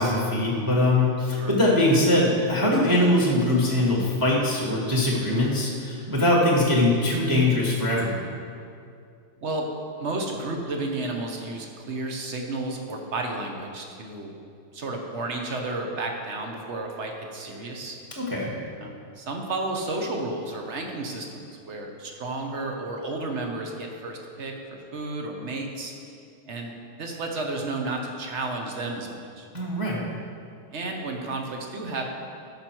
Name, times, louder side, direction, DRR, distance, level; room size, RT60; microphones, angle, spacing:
voice 1, 0.0-8.3 18.1-18.5 29.5-30.1, left 1 dB, 15° right, -3 dB, 1.1 m, -22 dB
voice 2, 10.0-14.3 14.7-18.0 18.8-24.5 24.9-25.9 26.5-26.7 27.0-29.5 30.7-32.1, right 2 dB, 45° right, 2 dB, 1.0 m, -32 dB
13.5 x 5.8 x 4.5 m, 2.4 s
omnidirectional pair, 2.1 m